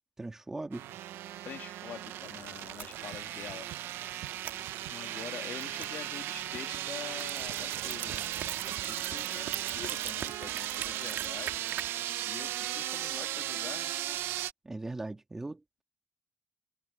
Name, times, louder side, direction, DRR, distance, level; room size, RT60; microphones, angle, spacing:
voice 1, 0.2-0.8 14.6-15.8, right 2 dB, 10° right, 1.9 m, -39 dB
sound 1, 0.7-14.5, right 13 dB, 75° right, 0.8 m, -36 dB
voice 2, 1.4-3.7 4.9-11.6 12.2-13.9, left 9 dB, 50° left, 2.7 m, -46 dB
sound 2, 2.2-11.9, right 10 dB, 55° right, 1.7 m, -44 dB
cardioid pair, 170°, 4 cm